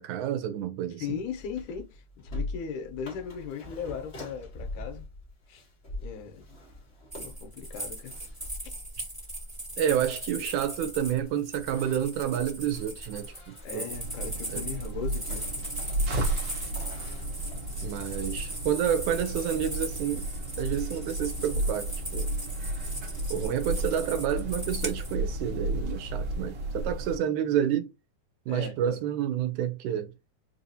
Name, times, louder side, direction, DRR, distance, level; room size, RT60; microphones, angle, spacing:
voice 1, 0.0-1.2 9.8-13.9 14.5-14.6 17.8-20.3 20.6-22.3 23.3-27.9 28.5-30.1, right 9 dB, 80° right, 1.9 m, -29 dB
voice 2, 1.0-5.1 5.5-5.6 6.0-6.5 7.2-8.2 13.6-15.5 15.9-16.0 28.5-29.0, left 7 dB, 80° left, 2.0 m, -38 dB
sound 1, 1.0-17.8, left 2 dB, 65° left, 0.6 m, -44 dB
sound 2, 7.1-25.1, right 1 dB, 30° right, 0.3 m, -39 dB
sound 3, 13.9-27.2, right 1 dB, 65° right, 1.2 m, -33 dB
4.7 x 2.7 x 2.6 m
omnidirectional pair, 3.6 m